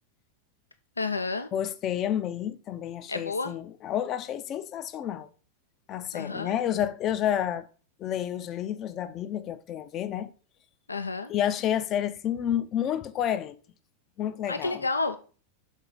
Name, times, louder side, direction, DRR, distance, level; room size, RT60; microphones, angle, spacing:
voice 1, 1.0-1.5 3.1-3.6 6.1-6.6 10.9-11.3 14.5-15.2, left 3 dB, 80° left, 0.4 m, -30 dB
voice 2, 1.5-5.3 5.9-7.7 8.0-10.3 11.3-13.6 14.2-14.8, left 10 dB, 30° left, 0.5 m, -30 dB
6.3 x 4.6 x 4.0 m
figure-of-eight pair, 90°, 0 cm